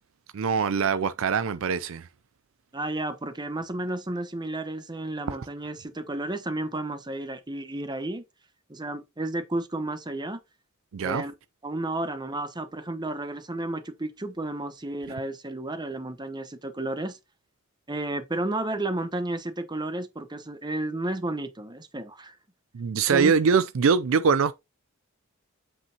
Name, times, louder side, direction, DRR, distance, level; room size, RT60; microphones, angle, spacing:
voice 1, 0.3-2.1 5.3-5.5 10.9-11.2 22.7-24.5, right 5 dB, 65° right, 0.4 m, -23 dB
voice 2, 2.7-8.2 8.7-10.4 11.0-11.3 11.6-17.2 17.9-22.3 23.1-23.3, right 2 dB, 20° right, 1.1 m, -32 dB
7.6 x 5.8 x 2.9 m
head